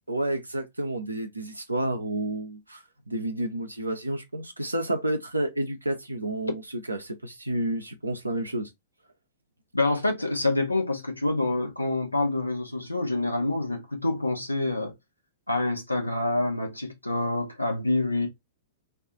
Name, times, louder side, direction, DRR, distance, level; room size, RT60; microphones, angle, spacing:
voice 1, 0.1-8.7, right 1 dB, 85° right, 0.6 m, -30 dB
voice 2, 9.7-14.9 15.5-18.3, left 2 dB, 85° left, 0.9 m, -27 dB
2.6 x 2.4 x 3.7 m
figure-of-eight pair, 105°, 0 cm